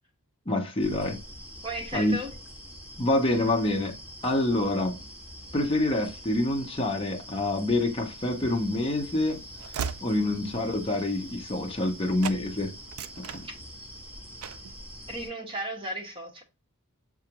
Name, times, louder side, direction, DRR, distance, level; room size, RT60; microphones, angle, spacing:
voice 1, 0.5-1.2 1.9-2.1 3.0-4.0 4.2-5.0 5.5-9.4 10.0-12.7 13.2-13.5, left 1 dB, 25° left, 0.7 m, -27 dB
sound 1, 0.8-15.3, equal, 5° right, 1.3 m, -44 dB
voice 2, 1.6-2.3 10.2-10.3 15.1-16.4, right 1 dB, 25° right, 1.2 m, -35 dB
Train / Slam, 8.3-12.0 12.2-12.4 12.8-14.0 14.4-14.7, right 7 dB, 65° right, 0.3 m, -39 dB
6.7 x 2.4 x 2.9 m
head